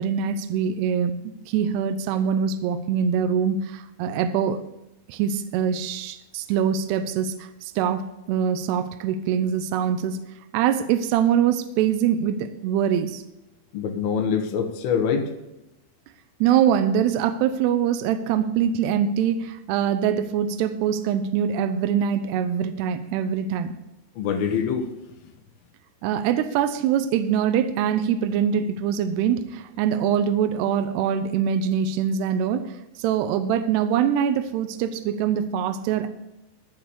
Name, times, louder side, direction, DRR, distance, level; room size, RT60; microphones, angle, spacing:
voice 1, 0.0-4.6 5.1-10.2 10.5-13.2 16.4-23.7 26.0-36.1, right 8 dB, 80° right, 9 dB, 2.4 m, -23 dB
voice 2, 13.7-15.3 24.2-24.9, left 6 dB, 70° left, 4 dB, 2.6 m, -24 dB
14.0 x 4.6 x 8.2 m, 0.94 s
omnidirectional pair, 5.4 m